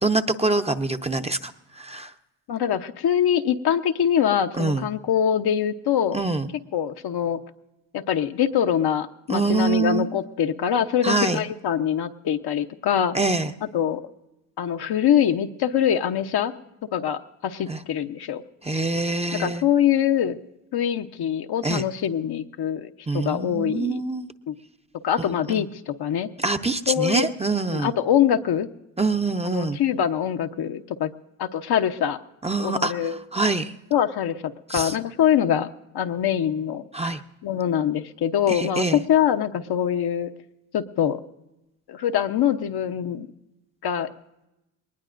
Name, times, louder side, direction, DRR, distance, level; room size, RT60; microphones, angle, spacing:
voice 1, 0.0-2.1 4.6-4.9 6.1-6.5 9.3-10.1 11.0-11.4 13.1-13.5 17.7-17.8 18.6-19.6 21.6-21.8 23.1-24.3 25.2-25.6 26.4-27.9 29.0-29.8 32.4-33.7 34.7-35.0 36.9-37.2 38.5-39.0, right 3 dB, 15° right, 7 dB, 0.7 m, -25 dB
voice 2, 2.5-6.2 6.7-7.4 7.9-13.2 13.7-14.0 14.6-16.5 16.9-18.4 19.4-20.4 20.7-24.0 24.5-24.6 25.0-26.3 26.9-27.3 27.7-28.7 29.5-31.1 31.4-32.2 32.6-33.2 33.9-37.1 37.4-40.3 40.7-41.2 41.9-43.3 43.8-44.1, left 9 dB, 60° left, 7 dB, 0.9 m, -24 dB
20.5 x 19.5 x 2.5 m, 0.94 s
supercardioid pair, 70°, 45 cm